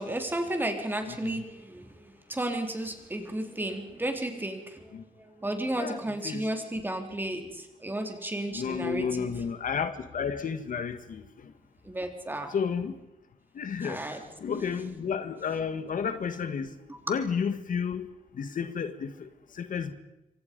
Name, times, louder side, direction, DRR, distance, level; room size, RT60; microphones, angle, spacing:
voice 1, 0.0-9.4 11.8-12.5 13.8-14.2 14.5-14.8 16.9-17.0, right 1 dB, 15° right, 4 dB, 3.5 m, -33 dB
voice 2, 1.1-1.4 4.9-5.0 5.8-6.0 6.2-6.4 8.5-11.5 12.5-13.0 13.5-19.9, left 6 dB, 70° left, 10 dB, 1.7 m, -32 dB
27.5 x 24.5 x 5.3 m, 0.94 s
wide cardioid pair, 130°, 14 cm